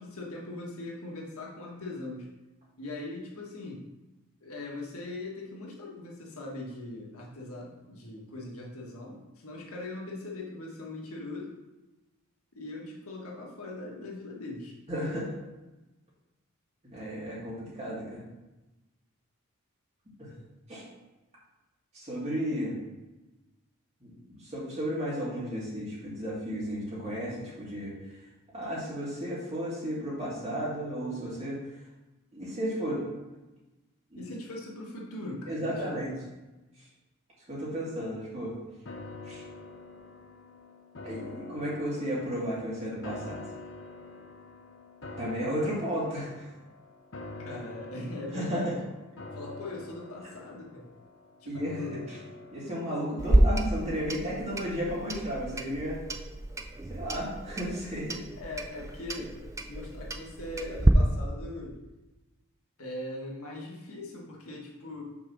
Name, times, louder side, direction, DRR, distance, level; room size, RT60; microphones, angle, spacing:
voice 1, 0.0-2.3 2.8-3.8 4.4-11.6 12.5-14.7 34.2-36.0 47.4-48.8 49.3-50.9 51.4-52.3 58.4-59.4 59.7-61.8 62.8-65.0, left 2 dB, 80° left, -2 dB, 1.6 m, -40 dB
voice 2, 14.9-15.3 16.8-18.2 20.2-20.3 20.7-20.8 21.9-22.7 24.0-27.9 28.5-31.6 32.3-33.0 34.1-34.3 35.5-36.1 37.5-38.5 39.2-39.4 41.0-43.4 45.2-46.5 48.3-48.7 51.5-52.2 52.5-56.0 56.9-58.2, equal, 30° right, -6 dB, 2.3 m, -33 dB
sound 1, 38.8-54.1 54.5-54.6, left 2 dB, 55° left, 0.8 m, -46 dB
Clock, 53.2-60.9, right 1 dB, 15° right, 0.3 m, -29 dB
6.0 x 3.9 x 6.1 m, 1.1 s
head